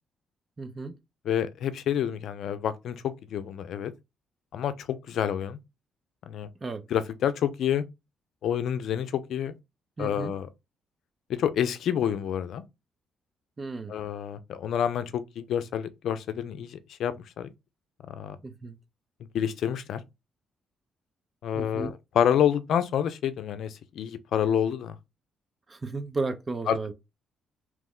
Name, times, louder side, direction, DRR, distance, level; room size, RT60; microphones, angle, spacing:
voice 1, 0.6-0.9 6.6-6.8 10.0-10.4 13.6-13.9 18.4-18.8 21.5-21.9 25.7-26.9, right 3 dB, 30° right, 0.5 m, -34 dB
voice 2, 1.3-3.9 4.5-5.6 6.3-6.5 6.9-7.8 8.4-9.5 10.0-10.5 11.4-12.6 13.9-17.5 18.2-18.4 19.3-20.0 21.4-23.7 24.0-25.0 26.7-26.9, left 9 dB, 70° left, 0.4 m, -28 dB
2.9 x 2.1 x 3.6 m
cardioid pair, 90°, 0 cm